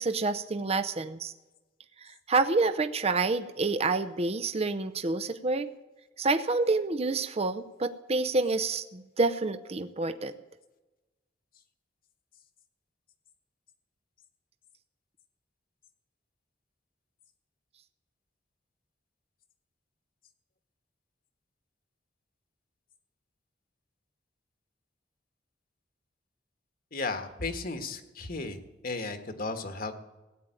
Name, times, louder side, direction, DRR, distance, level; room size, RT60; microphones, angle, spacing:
voice 1, 0.0-1.3 2.0-5.7 6.2-10.4, right 3 dB, 35° right, 9 dB, 0.7 m, -28 dB
voice 2, 26.9-28.6 28.8-29.9, left 3 dB, 50° left, 7 dB, 1.5 m, -34 dB
16.5 x 9.2 x 9.0 m, 1.1 s
head